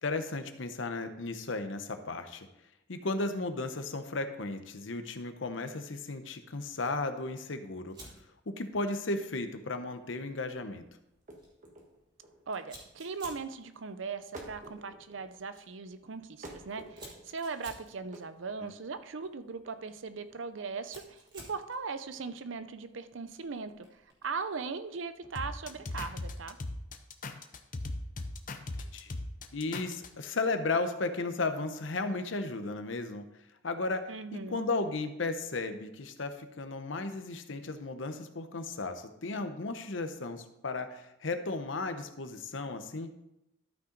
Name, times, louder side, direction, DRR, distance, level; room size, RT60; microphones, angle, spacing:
voice 1, 0.0-2.5 2.9-8.0 8.5-10.9 28.9-29.1 29.5-33.3 33.6-43.1, left 3 dB, 75° left, 8 dB, 0.9 m, -35 dB
Fire, 7.9-26.1, right 1 dB, 25° right, 2.6 m, -57 dB
sound 1, 11.1-24.1, right 1 dB, 40° right, 1.4 m, -52 dB
voice 2, 12.5-26.6 34.1-34.6, right 4 dB, 75° right, 11 dB, 0.6 m, -39 dB
sound 2, 25.4-30.3, left 2 dB, 45° left, 0.8 m, -38 dB
12.5 x 5.8 x 4.0 m, 0.87 s
head